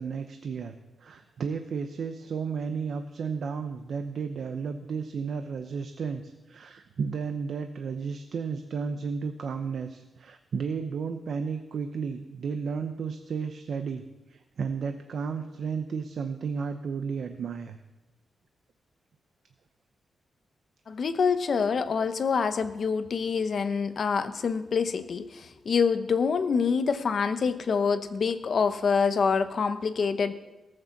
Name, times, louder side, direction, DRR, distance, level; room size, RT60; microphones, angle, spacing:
voice 1, 0.0-14.0 14.3-17.8, right 5 dB, 50° right, 7 dB, 0.7 m, -33 dB
voice 2, 20.9-30.3, left 5 dB, 40° left, 10 dB, 0.8 m, -26 dB
18.0 x 6.7 x 7.1 m, 1.0 s
wide cardioid pair, 180°, 0 cm